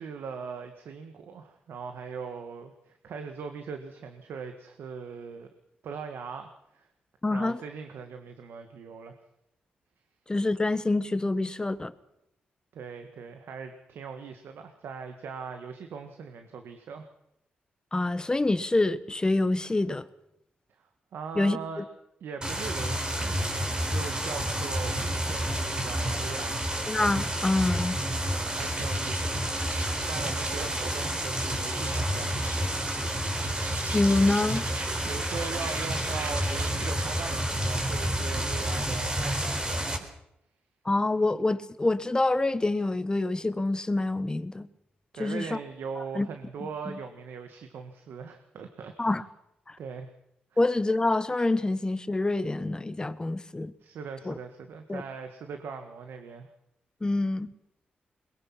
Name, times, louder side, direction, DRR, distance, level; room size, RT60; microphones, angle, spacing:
voice 1, 0.0-5.5 5.8-6.9 7.3-9.2 12.7-17.1 21.1-21.8 22.2-26.6 28.1-29.5 30.1-32.7 35.0-40.1 45.1-49.1 49.8-50.1 50.5-50.6 53.8-56.5, right 5 dB, 80° right, 1.7 m, -40 dB
voice 2, 7.2-7.6 10.3-11.9 17.9-20.0 21.3-21.8 26.9-28.0 33.9-34.6 40.8-44.7 45.2-45.6 46.1-46.3 49.0-49.2 49.7-49.8 50.6-53.7 54.2-54.4 54.9-55.0 57.0-57.5, left 2 dB, 20° left, 1.3 m, -26 dB
sound 1, 22.4-40.0, right 1 dB, 25° right, 4.0 m, -30 dB
Insect, 27.9-37.1, right 3 dB, 55° right, 3.4 m, -42 dB
22.0 x 21.5 x 5.9 m
cardioid pair, 70°, 4 cm